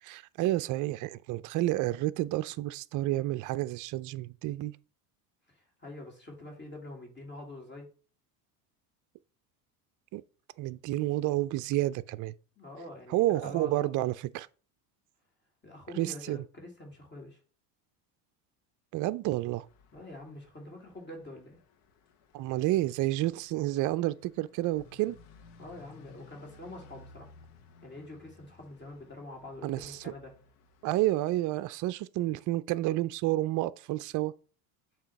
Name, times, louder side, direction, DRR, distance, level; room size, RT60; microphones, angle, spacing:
voice 1, 0.0-4.7 10.1-10.2 10.6-12.3 13.1-14.5 16.0-16.4 18.9-19.7 22.3-25.2 29.6-30.1 30.8-34.3, right 16 dB, 45° right, 0.4 m, -30 dB
voice 2, 5.5-7.9 12.6-14.0 15.6-17.4 19.9-21.6 25.6-27.3 27.8-30.3, left 2 dB, 25° left, 2.5 m, -46 dB
sound 1, 19.6-31.3, left 3 dB, 80° left, 1.3 m, -58 dB
7.3 x 2.9 x 5.8 m
supercardioid pair, 100°, 46 cm